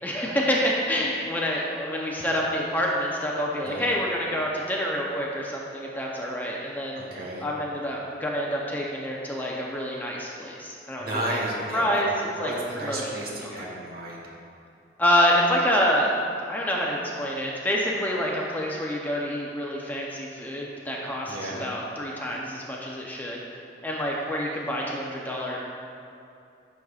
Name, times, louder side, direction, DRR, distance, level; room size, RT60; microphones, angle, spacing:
voice 1, 0.0-7.0 7.4-11.4 11.7-12.1 12.4-12.5 12.9-13.0 13.4-13.5 15.0-16.1 16.4-23.4 23.8-25.6, equal, 10° left, -3 dB, 0.6 m, -27 dB
voice 2, 3.6-3.9 7.0-7.5 11.0-14.2 21.2-21.7, right 1 dB, 55° right, -3 dB, 1.4 m, -33 dB
10.5 x 6.3 x 2.4 m, 2.6 s
head